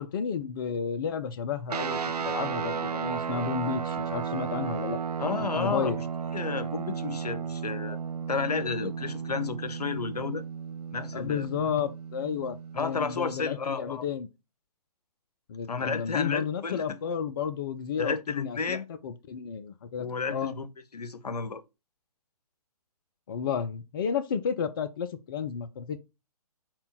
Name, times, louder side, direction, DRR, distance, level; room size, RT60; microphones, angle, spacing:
voice 1, 0.0-5.0 5.6-6.0 11.1-14.3 15.5-20.6 23.3-26.0, left 7 dB, 35° left, 0.4 m, -32 dB
sound 1, 1.7-13.4, right 7 dB, 85° right, 0.4 m, -34 dB
voice 2, 5.2-5.9 6.3-8.0 8.3-10.4 10.9-11.5 12.8-14.0 15.7-17.0 18.0-18.8 20.0-20.7 20.9-21.6, left 5 dB, 80° left, 0.6 m, -32 dB
5.6 x 2.3 x 3.8 m
figure-of-eight pair, 130°, 20 cm